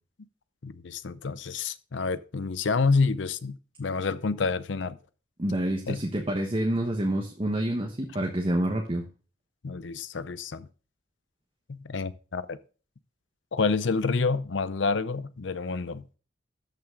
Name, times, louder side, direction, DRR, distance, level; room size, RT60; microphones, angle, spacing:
voice 1, 0.6-5.0 5.9-6.0 9.6-10.7 11.7-12.6 13.5-16.0, left 4 dB, 75° left, 0.6 m, -28 dB
voice 2, 5.4-9.0, right 1 dB, 30° right, 1.2 m, -28 dB
13.0 x 5.9 x 3.8 m
head